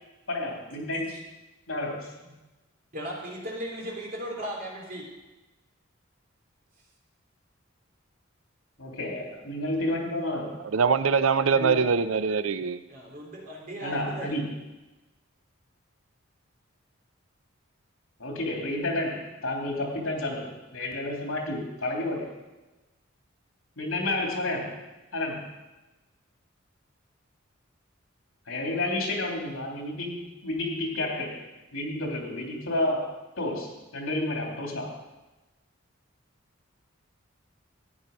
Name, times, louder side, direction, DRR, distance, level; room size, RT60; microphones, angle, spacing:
voice 1, 0.3-1.2 1.7-2.1 8.8-10.6 11.4-11.9 13.8-14.6 18.2-22.3 23.8-24.7 25.1-25.5 28.5-31.4 31.7-34.9, left 1 dB, 80° left, 0 dB, 3.1 m, -31 dB
voice 2, 2.9-5.0 12.9-14.4, right 1 dB, 40° right, -2 dB, 3.3 m, -37 dB
voice 3, 10.7-12.8, right 5 dB, 80° right, 13 dB, 0.5 m, -23 dB
14.5 x 9.7 x 5.4 m, 1.1 s
head